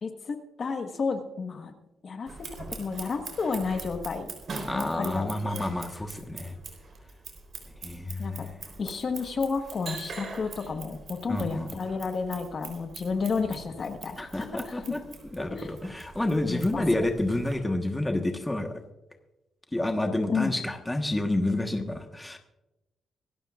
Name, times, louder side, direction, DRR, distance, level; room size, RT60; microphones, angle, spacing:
voice 1, 0.0-1.7 2.0-4.3 4.7-5.7 8.2-8.5 8.8-14.8 15.5-15.7 16.5-16.8 20.3-20.5, left 4 dB, 45° left, 6 dB, 1.4 m, -31 dB
Scissors, 2.3-17.5, right 4 dB, 50° right, 3.9 m, -43 dB
voice 2, 4.7-6.5 7.8-8.5 11.3-11.7 14.2-15.0 15.3-18.8 19.7-22.4, left 1 dB, 10° left, 4 dB, 1.3 m, -29 dB
25.0 x 13.0 x 2.5 m, 0.97 s
cardioid pair, 120°, 0 cm